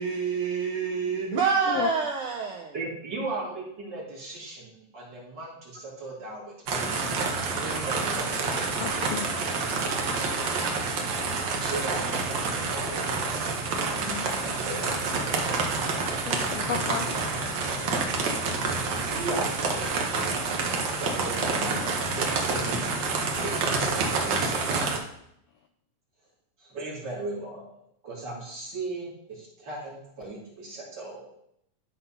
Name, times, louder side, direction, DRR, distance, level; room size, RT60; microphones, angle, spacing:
voice 1, 0.0-2.7, right 5 dB, 85° right, 1.2 m, -27 dB
voice 2, 2.7-7.0 7.4-8.4 11.6-14.3 14.6-15.6 18.6-18.7 19.1-20.2 20.6-25.0 26.6-27.8 28.0-31.3, right 2 dB, 40° right, 2.8 m, -38 dB
sound 1, 6.7-25.0, right 4 dB, 60° right, 1.2 m, -28 dB
voice 3, 8.8-9.8 16.3-17.6, left 8 dB, 85° left, 1.4 m, -34 dB
11.5 x 4.0 x 5.6 m
omnidirectional pair, 3.4 m